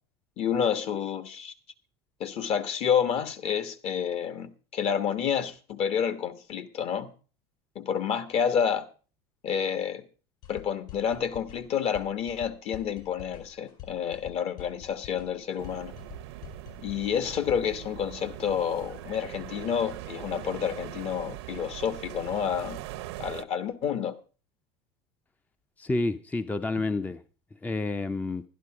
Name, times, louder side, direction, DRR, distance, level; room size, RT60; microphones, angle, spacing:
voice 1, 0.4-1.5 2.2-7.1 7.7-8.8 9.4-10.1 10.5-15.9 16.8-22.8 23.2-24.1, left 8 dB, 50° left, 1.4 m, -29 dB
sound 1, 10.4-17.8, left 11 dB, 65° left, 5.5 m, -47 dB
sound 2, 15.6-23.4, right 16 dB, 75° right, 0.8 m, -41 dB
voice 2, 25.8-27.2 27.6-28.4, left 2 dB, 10° left, 0.5 m, -29 dB
11.5 x 11.0 x 4.8 m
supercardioid pair, 95°, 13 cm